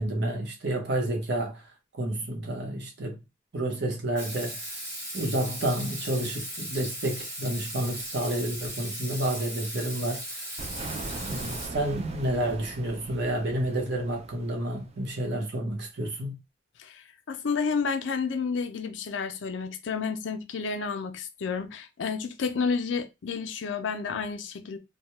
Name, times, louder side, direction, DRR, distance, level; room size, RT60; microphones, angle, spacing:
voice 1, 0.0-1.6 2.0-3.2 3.5-4.8 5.1-10.5 11.1-16.4, right 1 dB, 60° right, 0.8 m, -30 dB
Water tap faucet / Sink (filling or washing), 4.2-11.7, right 1 dB, 15° right, 1.1 m, -37 dB
sound 1, 10.6-15.2, right 3 dB, 30° right, 0.3 m, -40 dB
voice 2, 16.8-24.8, left 5 dB, 75° left, 0.4 m, -31 dB
2.2 x 2.2 x 2.9 m
head